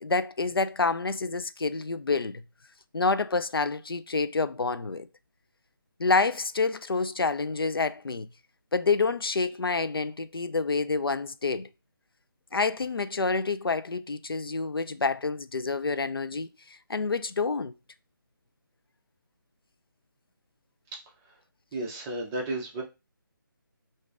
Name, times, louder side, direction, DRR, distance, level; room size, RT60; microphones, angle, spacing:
voice 1, 0.0-2.4 2.9-5.1 6.0-8.3 8.7-11.7 12.5-16.5 16.9-17.7, left 4 dB, 90° left, 0.4 m, -28 dB
voice 2, 20.9-21.4 21.7-22.8, right 2 dB, 10° right, 0.4 m, -34 dB
2.5 x 2.4 x 3.9 m
figure-of-eight pair, 155°, 12 cm